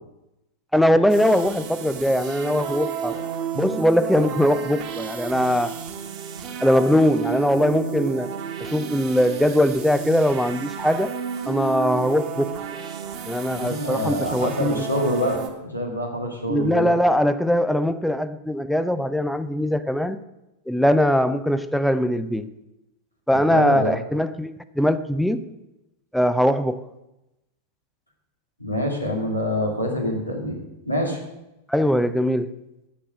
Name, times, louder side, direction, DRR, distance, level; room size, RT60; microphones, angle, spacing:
voice 1, 0.7-3.2 3.5-5.7 6.6-8.3 8.6-11.1 11.5-12.5 13.3-14.8 16.5-20.2 20.7-22.5 23.3-25.4 26.1-26.8 31.7-32.5, equal, ahead, 0.5 m, -21 dB
sound 1, 1.1-15.5, right 8 dB, 40° right, 1.5 m, -32 dB
voice 2, 13.5-16.9 23.3-24.0 28.6-30.6 30.9-31.2, equal, 90° left, 2.0 m, -26 dB
9.6 x 7.3 x 6.5 m
figure-of-eight pair, 90°, 0 cm